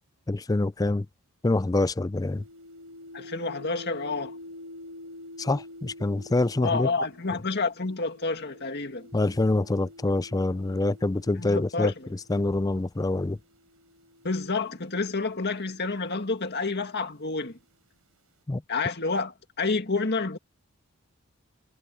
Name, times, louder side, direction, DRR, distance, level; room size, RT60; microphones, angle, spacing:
voice 1, 0.3-1.1 1.4-2.4 5.4-6.9 9.1-11.9 12.3-13.4 18.5-18.6, left 2 dB, 15° left, 0.4 m, -25 dB
sound 1, 2.2-12.5 13.4-17.2, left 1 dB, 75° right, 5.0 m, -48 dB
voice 2, 3.1-4.4 6.6-9.1 11.4-12.1 14.2-17.6 18.7-20.4, left 3 dB, 50° left, 2.0 m, -29 dB
head